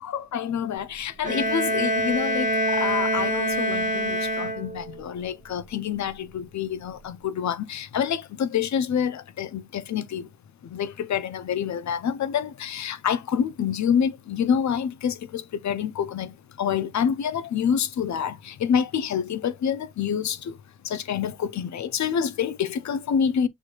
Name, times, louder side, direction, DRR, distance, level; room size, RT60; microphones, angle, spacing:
voice 1, 0.0-10.3 10.6-20.5 20.8-23.5, left 8 dB, 60° left, 0.6 m, -27 dB
Bowed string instrument, 1.2-5.0, equal, 25° right, 1.3 m, -25 dB
6.5 x 3.0 x 2.4 m
wide cardioid pair, 115°, 32 cm